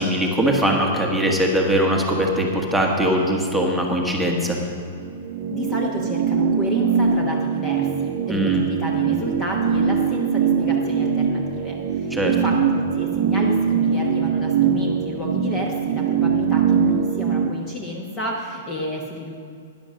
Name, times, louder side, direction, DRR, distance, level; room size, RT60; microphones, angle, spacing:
voice 1, 0.0-4.6 8.3-8.6 12.1-12.3, equal, ahead, -1 dB, 1.3 m, -21 dB
sound 1, 5.0-17.5, right 6 dB, 45° right, 0.8 m, -22 dB
voice 2, 5.5-19.4, left 1 dB, 15° left, 0 dB, 1.1 m, -30 dB
12.0 x 10.0 x 6.4 m, 2.4 s
hypercardioid pair, 160°, 0 cm